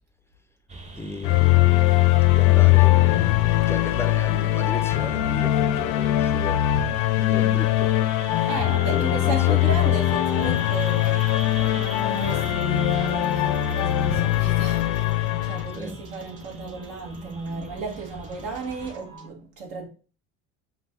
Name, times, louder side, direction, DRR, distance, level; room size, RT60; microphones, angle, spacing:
sound 1, 0.7-18.9, right 3 dB, 20° right, 0.7 m, -43 dB
voice 1, 0.9-7.9 8.8-9.8 15.7-16.0, left 2 dB, 10° left, 0.4 m, -36 dB
sound 2, 1.2-15.7, left 14 dB, 70° left, 0.6 m, -21 dB
voice 2, 8.4-11.4 12.1-19.9, right 4 dB, 80° right, 1.8 m, -34 dB
sound 3, 10.4-19.3, right 2 dB, 55° right, 2.3 m, -46 dB
5.7 x 2.6 x 3.6 m
supercardioid pair, 105°, 35 cm